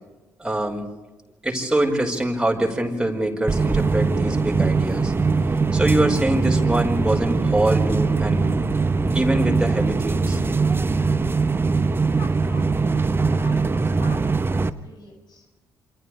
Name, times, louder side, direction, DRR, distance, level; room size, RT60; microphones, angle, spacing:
voice 1, 0.4-0.9 1.4-5.1 5.7-8.7 9.1-10.4, right 1 dB, 10° right, 1 dB, 5.7 m, -24 dB
sound 1, 3.5-14.7, right 4 dB, 25° right, 1.1 m, -21 dB
voice 2, 12.1-12.7 13.3-15.5, left 2 dB, 50° left, 1 dB, 6.9 m, -44 dB
28.5 x 28.0 x 3.4 m, 1.1 s
figure-of-eight pair, 45°, 9 cm